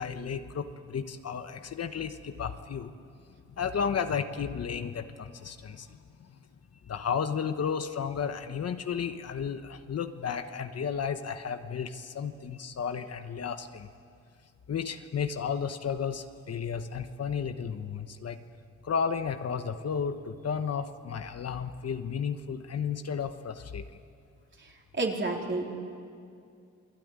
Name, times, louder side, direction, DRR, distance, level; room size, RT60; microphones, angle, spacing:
voice 1, 0.0-2.9 3.6-6.4 6.8-13.9 14.7-18.4 18.8-23.9, left 6 dB, 50° left, 8 dB, 1.2 m, -33 dB
voice 2, 24.9-25.7, right 3 dB, 35° right, 0 dB, 3.9 m, -29 dB
28.0 x 19.5 x 9.7 m, 2.4 s
cardioid pair, 105°, 31 cm